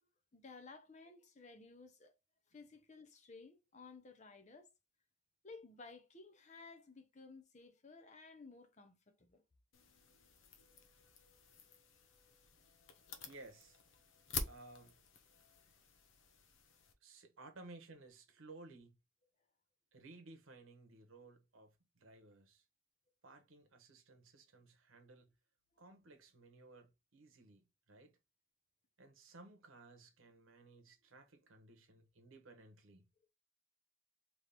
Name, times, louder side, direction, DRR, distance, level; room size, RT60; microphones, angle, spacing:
voice 1, 0.3-2.1 2.5-4.7 5.4-9.4, left 3 dB, 35° left, 0.7 m, -56 dB
sound 1, 9.7-16.9, left 5 dB, 70° left, 0.8 m, -49 dB
voice 2, 13.2-13.8 14.4-15.0 17.0-19.0 19.9-22.6 23.2-25.3 25.8-27.6 27.9-28.2 29.0-33.1, right 2 dB, 75° right, 1.0 m, -58 dB
3.4 x 3.0 x 4.2 m
head